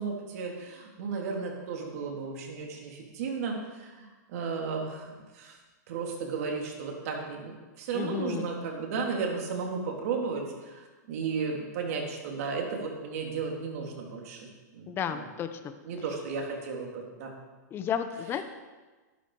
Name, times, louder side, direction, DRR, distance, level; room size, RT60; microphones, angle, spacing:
voice 1, 0.0-5.5 5.9-10.8 11.1-14.5 14.7-15.2 15.8-17.3, right 5 dB, 55° right, 0 dB, 3.2 m, -34 dB
voice 2, 7.9-8.5 14.9-15.7 17.7-18.4, left 8 dB, 25° left, 9 dB, 1.0 m, -32 dB
12.5 x 12.0 x 4.9 m, 1.3 s
hypercardioid pair, 140°, 10 cm